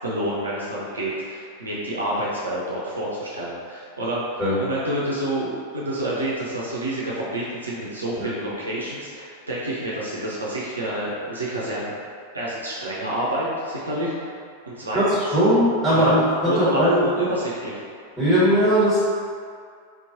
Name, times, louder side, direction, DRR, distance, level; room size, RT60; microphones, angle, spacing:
voice 1, 0.0-4.2 4.6-11.9 12.3-14.3 14.7-15.2 15.9-16.2 16.4-17.8, right 1 dB, 75° right, -6 dB, 0.6 m, -28 dB
voice 2, 14.9-17.1 18.2-19.0, equal, 5° left, -13 dB, 1.4 m, -19 dB
3.7 x 3.0 x 2.6 m, 2.2 s
figure-of-eight pair, 90°, 0 cm